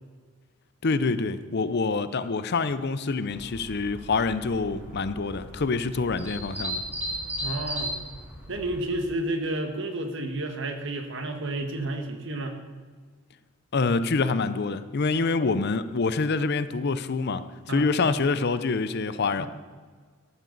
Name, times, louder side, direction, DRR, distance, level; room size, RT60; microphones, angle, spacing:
voice 1, 0.8-6.8 13.7-19.5, left 4 dB, 50° left, 13 dB, 0.6 m, -26 dB
sound 1, 3.3-8.8, equal, 10° right, 2.7 m, -36 dB
voice 2, 7.4-8.0 8.5-12.5 17.7-17.9 19.4-19.5, right 1 dB, 60° right, 5 dB, 1.5 m, -31 dB
14.0 x 12.0 x 4.0 m, 1.5 s
head